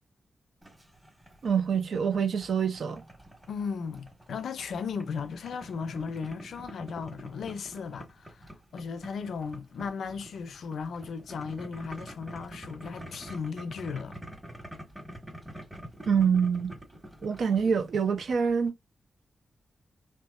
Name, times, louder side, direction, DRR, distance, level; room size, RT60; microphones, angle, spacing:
Boiling, 0.6-18.7, right 1 dB, 15° right, 1.4 m, -47 dB
voice 1, 1.4-3.0 16.1-16.7 17.2-18.7, right 6 dB, 75° right, 0.5 m, -26 dB
voice 2, 3.5-14.2, left 5 dB, 85° left, 0.4 m, -36 dB
2.7 x 2.3 x 2.4 m
cardioid pair, 55°, 0 cm